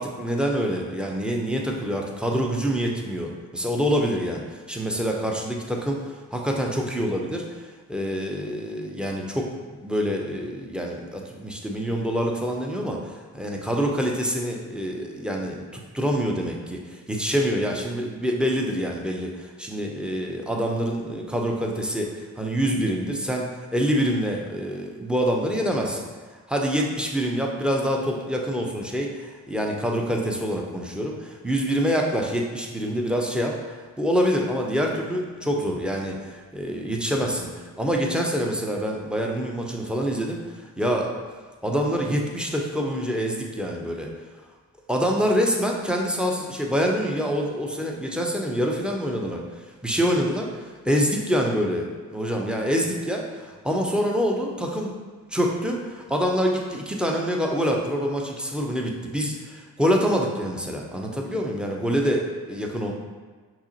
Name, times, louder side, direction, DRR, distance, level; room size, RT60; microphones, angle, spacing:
voice 1, 0.0-23.5 23.7-26.0 26.5-33.6 34.0-40.4 40.8-41.1 41.6-44.1 44.9-54.9 55.3-62.9, equal, ahead, 0 dB, 0.6 m, -26 dB
5.6 x 2.0 x 2.8 m, 1.4 s
supercardioid pair, 40°, 38 cm